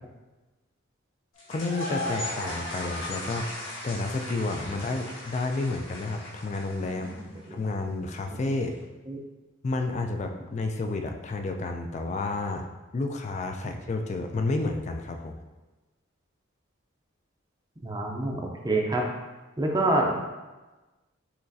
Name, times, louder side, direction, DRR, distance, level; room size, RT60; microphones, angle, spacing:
sound 1, 1.4-7.4, left 1 dB, 70° left, 1.4 m, -37 dB
voice 1, 1.5-7.1 7.5-8.8 9.6-12.7 12.9-15.4, left 2 dB, 35° left, 5 dB, 0.3 m, -30 dB
voice 2, 7.2-7.6 8.3-8.4 9.1-9.2 17.8-19.1 19.6-20.3, right 2 dB, 20° right, 0 dB, 0.5 m, -27 dB
5.7 x 3.0 x 2.7 m, 1.2 s
head